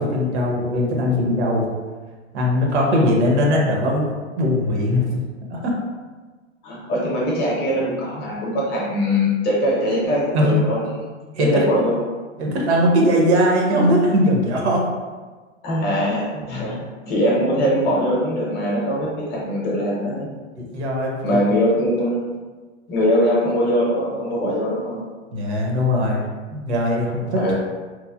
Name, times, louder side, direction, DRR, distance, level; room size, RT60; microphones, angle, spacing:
voice 1, 0.0-1.7 2.3-5.8 10.3-10.6 11.3-11.5 12.4-14.8 16.3-16.8 20.6-21.4 25.3-27.4, equal, 65° right, -1 dB, 0.8 m, -20 dB
voice 2, 6.6-11.0 11.4-12.0 15.6-20.3 21.2-22.2 22.9-25.0 27.3-27.5, equal, 30° left, -5 dB, 0.7 m, -21 dB
3.1 x 2.1 x 2.3 m, 1.4 s
hypercardioid pair, 135°, 36 cm